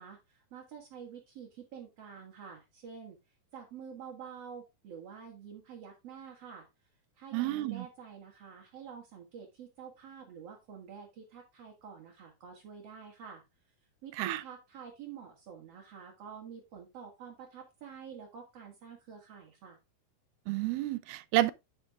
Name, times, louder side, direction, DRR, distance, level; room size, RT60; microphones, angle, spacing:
voice 1, 0.0-3.2 3.5-6.7 7.2-13.4 14.0-19.8, right 7 dB, 50° right, 2.5 m, -48 dB
voice 2, 7.3-7.9 14.2-14.4 20.5-21.5, right 16 dB, 85° right, 2.6 m, -30 dB
9.4 x 8.8 x 2.5 m
omnidirectional pair, 4.3 m